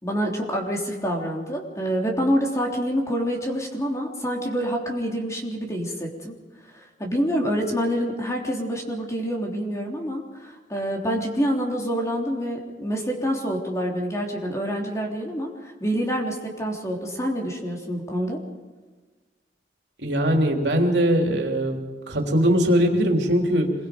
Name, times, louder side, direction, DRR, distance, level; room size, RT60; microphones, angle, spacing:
voice 1, 0.0-6.3 7.0-18.4, equal, 20° left, 0 dB, 3.4 m, -27 dB
voice 2, 20.0-21.8 22.1-23.7, equal, 80° right, 2 dB, 3.3 m, -21 dB
26.5 x 22.5 x 5.2 m, 1.3 s
head